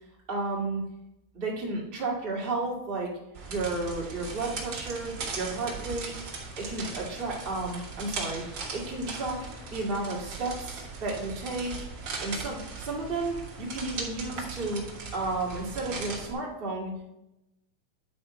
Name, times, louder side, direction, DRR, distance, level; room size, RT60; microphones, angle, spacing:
voice 1, 0.3-0.8 1.3-3.1 3.5-6.1 6.6-9.4 9.7-11.7 12.2-14.8 15.1-17.0, right 3 dB, 40° right, -4 dB, 0.7 m, -32 dB
sound 1, 3.3-16.3, right 4 dB, 80° right, 1.0 m, -38 dB
10.0 x 4.4 x 4.8 m, 0.92 s
omnidirectional pair, 4.3 m